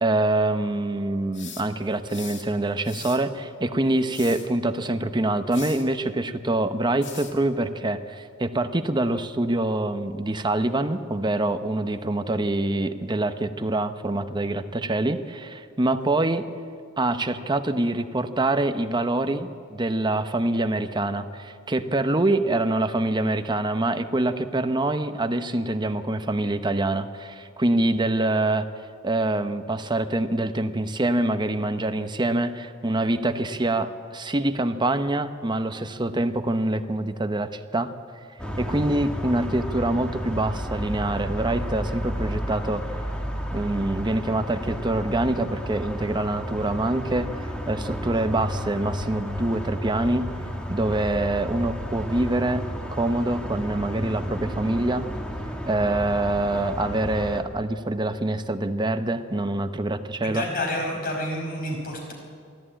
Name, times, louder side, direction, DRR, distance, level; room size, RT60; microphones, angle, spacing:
voice 1, 0.0-16.5 17.0-28.7 29.0-37.9 38.6-42.8 43.5-47.3 47.7-50.3 50.7-52.7 52.9-55.0 55.6-60.4, right 2 dB, 20° right, 9 dB, 0.8 m, -25 dB
sound 1, 1.3-2.5 2.8-3.3 4.0-4.5 5.5-5.9 7.0-7.4, left 7 dB, 65° left, 2.4 m, -41 dB
sound 2, 38.4-57.4, equal, 5° left, 1.7 m, -32 dB
voice 2, 60.2-62.1, left 1 dB, 45° left, 1 dB, 5.0 m, -29 dB
22.5 x 14.0 x 8.9 m, 2.2 s
head